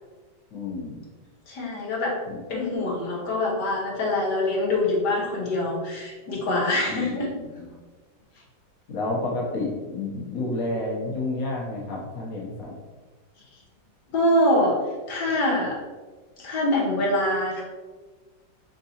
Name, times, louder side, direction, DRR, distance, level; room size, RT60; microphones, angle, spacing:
voice 1, 0.5-1.0 2.3-2.4 6.9-7.7 8.9-12.7, left 2 dB, 60° left, -4 dB, 1.3 m, -30 dB
voice 2, 1.5-2.2 2.5-7.3 14.1-14.8 15.1-15.8 16.4-17.6, left 1 dB, 75° left, -4 dB, 1.6 m, -24 dB
3.9 x 3.7 x 2.8 m, 1.3 s
omnidirectional pair, 1.8 m